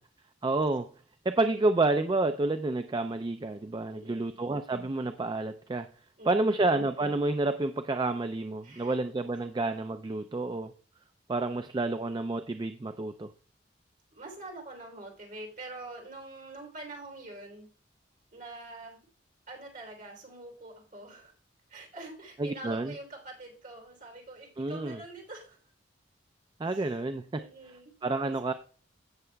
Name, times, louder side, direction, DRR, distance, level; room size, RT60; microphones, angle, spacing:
voice 1, 0.4-0.9 1.3-5.9 6.3-10.7 11.3-13.3 22.4-22.9 24.6-25.0 26.6-27.2 28.0-28.5, right 2 dB, 25° right, 9 dB, 0.3 m, -29 dB
voice 2, 3.9-4.4 6.2-6.6 8.6-9.0 14.1-17.7 18.3-19.0 19.5-21.3 21.7-25.6 26.6-27.0 27.3-28.5, right 2 dB, 45° right, 2 dB, 3.3 m, -45 dB
16.0 x 6.7 x 2.3 m, 0.40 s
head